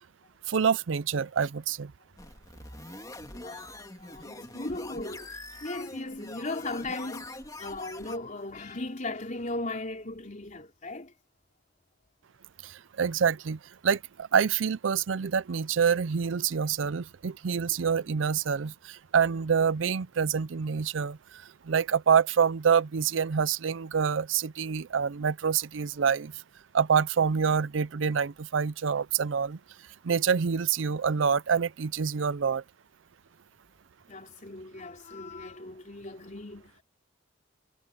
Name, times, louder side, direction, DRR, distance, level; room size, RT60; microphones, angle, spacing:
voice 1, 0.5-1.9 12.6-26.4 26.7-29.6 30.0-32.6, right 6 dB, 80° right, 0.5 m, -26 dB
sound 1, 2.2-8.2, left 2 dB, 20° left, 3.0 m, -44 dB
voice 2, 3.3-11.1 34.1-36.8, left 2 dB, 40° left, 3.9 m, -37 dB
head